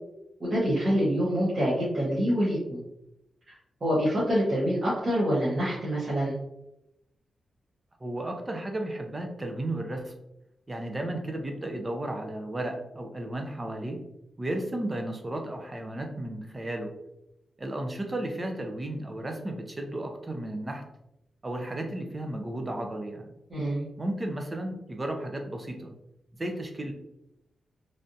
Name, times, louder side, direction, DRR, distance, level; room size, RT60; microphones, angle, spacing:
voice 1, 0.4-2.8 3.8-6.4 23.5-23.9, equal, 45° right, -10 dB, 1.1 m, -26 dB
voice 2, 8.0-10.2 10.7-14.0 14.4-16.9 17.6-20.8 21.4-23.3 24.0-25.9 26.3-26.9, right 1 dB, 25° right, 3 dB, 0.5 m, -34 dB
3.3 x 2.5 x 2.6 m, 0.88 s
wide cardioid pair, 100°, 0 cm